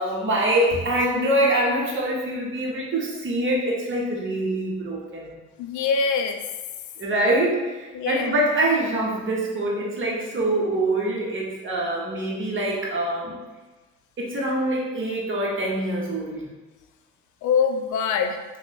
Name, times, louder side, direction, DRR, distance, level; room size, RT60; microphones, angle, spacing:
voice 1, 0.0-5.4 7.0-13.4 14.2-16.5, right 1 dB, 35° right, -3 dB, 1.1 m, -24 dB
voice 2, 5.6-6.4 7.9-8.3 17.4-18.4, left 6 dB, 60° left, 7 dB, 0.5 m, -23 dB
2.9 x 2.4 x 3.9 m, 1.2 s
hypercardioid pair, 45°, 34 cm